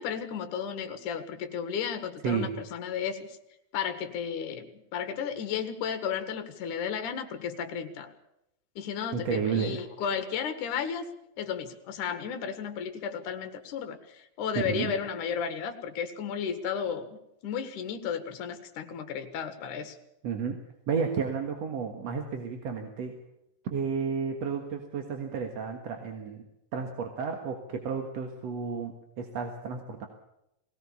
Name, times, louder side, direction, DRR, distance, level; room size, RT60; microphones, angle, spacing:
voice 1, 0.0-3.4 3.7-8.1 8.8-11.1 11.4-20.0, left 7 dB, 60° left, 7 dB, 2.9 m, -34 dB
voice 2, 9.1-9.8 14.7-14.9 20.2-20.6 20.9-23.2 23.7-26.4 26.7-30.1, right 6 dB, 55° right, 4 dB, 2.3 m, -32 dB
20.5 x 18.0 x 7.1 m, 0.83 s
omnidirectional pair, 4.3 m